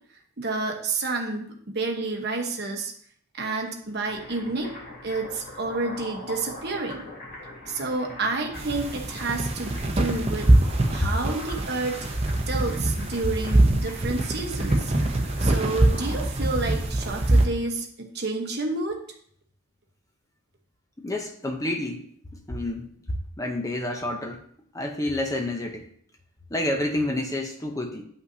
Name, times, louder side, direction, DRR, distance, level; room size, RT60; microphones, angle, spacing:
voice 1, 0.4-2.9 3.4-4.7 5.0-7.0 7.7-10.5 10.9-12.0 12.5-14.9 15.4-19.0, right 3 dB, 50° right, 2 dB, 1.1 m, -29 dB
sound 1, 3.8-17.7, left 1 dB, 45° left, 3.1 m, -43 dB
sound 2, 8.6-17.5, right 1 dB, 30° right, 0.7 m, -24 dB
voice 2, 21.0-22.0 22.5-22.9 23.4-24.4 24.7-25.8 26.5-28.0, left 1 dB, 15° left, 2 dB, 0.6 m, -28 dB
9.4 x 5.6 x 2.7 m, 0.63 s
head